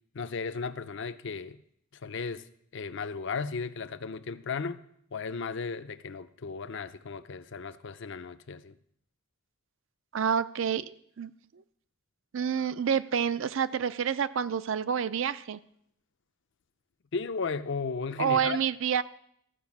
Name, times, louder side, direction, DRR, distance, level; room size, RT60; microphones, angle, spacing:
voice 1, 0.1-1.6 1.9-2.4 2.7-4.8 5.1-8.8 17.1-18.6, left 5 dB, 55° left, 12 dB, 0.5 m, -35 dB
voice 2, 10.1-11.3 12.3-15.6 18.2-19.0, right 7 dB, 60° right, 15 dB, 0.4 m, -28 dB
14.0 x 5.6 x 7.2 m, 0.70 s
head